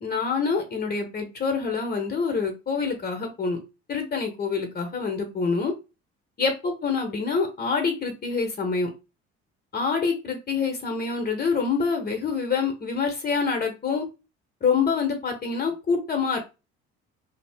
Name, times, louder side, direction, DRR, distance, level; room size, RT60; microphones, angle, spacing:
voice 1, 0.0-3.6 3.9-5.7 6.4-8.9 9.7-14.1 14.6-16.4, left 5 dB, 30° left, 4 dB, 0.8 m, -26 dB
2.7 x 2.3 x 3.3 m, 0.29 s
hypercardioid pair, 65°, 31 cm